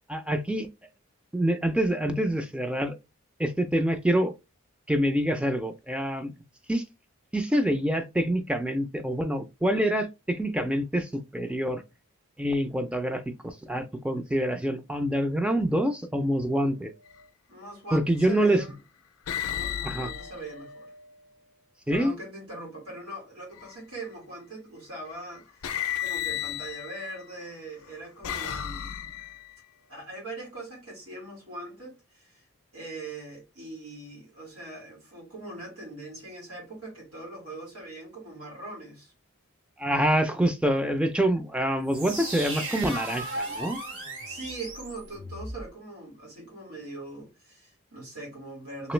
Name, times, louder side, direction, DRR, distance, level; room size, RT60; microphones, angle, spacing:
voice 1, 0.1-0.7 1.3-2.9 3.4-4.3 4.9-6.3 6.7-6.8 7.3-11.8 12.4-16.9 17.9-18.6 19.8-20.1 21.9-22.1 39.8-43.8 48.8-48.9, right 1 dB, 5° right, 0.3 m, -26 dB
sound 1, 17.0-17.3 18.2-18.6 19.3-21.3 23.5-24.1 25.1-25.2 25.6-27.3 27.8-29.5, left 10 dB, 85° left, 0.5 m, -34 dB
voice 2, 17.5-18.8 19.5-20.9 21.9-28.9 29.9-32.4 32.7-39.1 44.3-48.9, right 2 dB, 85° right, 1.9 m, -41 dB
sound 2, 41.9-45.7, right 2 dB, 60° right, 1.8 m, -36 dB
3.1 x 3.0 x 3.1 m
head